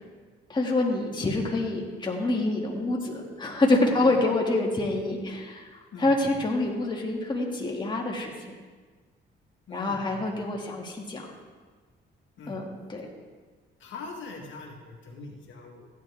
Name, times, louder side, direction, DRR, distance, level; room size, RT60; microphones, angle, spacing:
voice 1, 0.5-5.7 6.0-8.5 9.7-11.3 12.5-13.1, left 2 dB, 25° left, -2 dB, 2.2 m, -26 dB
voice 2, 9.7-10.5 12.4-12.6 13.8-15.9, left 3 dB, 70° left, -1 dB, 1.8 m, -42 dB
15.5 x 10.5 x 3.6 m, 1.4 s
cardioid pair, 90°, 20 cm